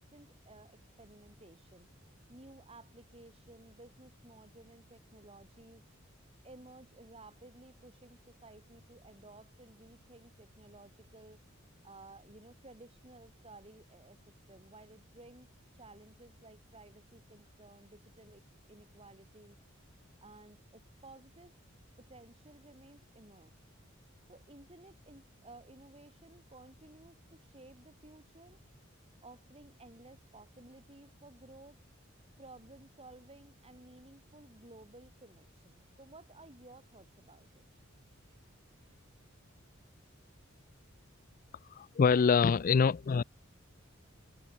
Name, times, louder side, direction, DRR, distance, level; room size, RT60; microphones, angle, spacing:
voice 1, 0.0-1.9 2.3-5.8 6.4-15.5 15.7-19.6 20.2-21.5 22.0-23.5 24.3-28.6 29.2-31.8 32.4-37.6, right 2 dB, 30° right, 7.0 m, -56 dB
voice 2, 41.7-43.2, left 5 dB, 40° left, 0.4 m, -25 dB
head